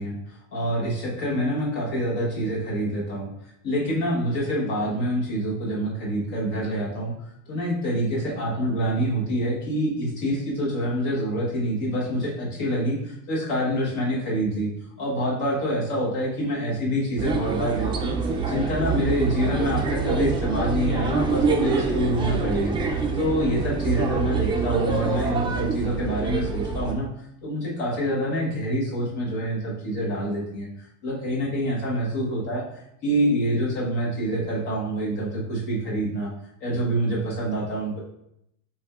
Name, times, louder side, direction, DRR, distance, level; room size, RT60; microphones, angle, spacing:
voice 1, 0.0-3.3 3.6-7.1 7.5-14.7 15.0-18.1 18.4-36.3 36.6-38.0, equal, 60° left, -3 dB, 1.3 m, -26 dB
sound 1, 17.2-26.9, right 4 dB, 15° right, 0.3 m, -25 dB
6.0 x 3.5 x 2.4 m, 0.81 s
cardioid pair, 135°, 40 cm